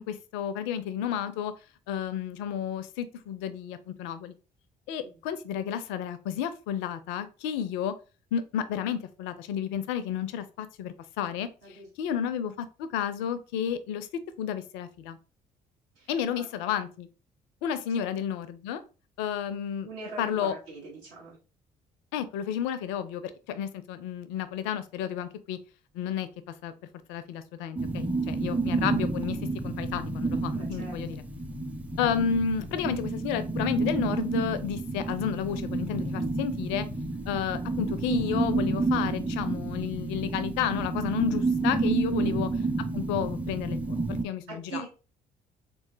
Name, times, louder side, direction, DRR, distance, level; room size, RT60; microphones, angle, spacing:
voice 1, 0.0-1.5 1.9-4.3 4.9-7.9 8.3-11.5 12.0-14.1 14.4-15.2 16.1-17.1 17.6-18.8 19.2-19.9 20.2-20.5 22.1-23.2 23.5-25.6 25.9-26.7 27.1-29.4 29.6-31.2 32.0-36.8 37.3-42.5 42.9-44.9, left 8 dB, 65° left, 13 dB, 0.4 m, -31 dB
voice 2, 15.9-16.5 18.0-18.1 19.8-21.4 28.2-28.5 30.5-31.2 42.0-42.4 44.5-44.9, right 3 dB, 70° right, -4 dB, 1.6 m, -43 dB
sound 1, 27.8-44.2, right 3 dB, 5° right, 0.6 m, -30 dB
3.6 x 3.0 x 2.5 m, 0.33 s
figure-of-eight pair, 45°, 21 cm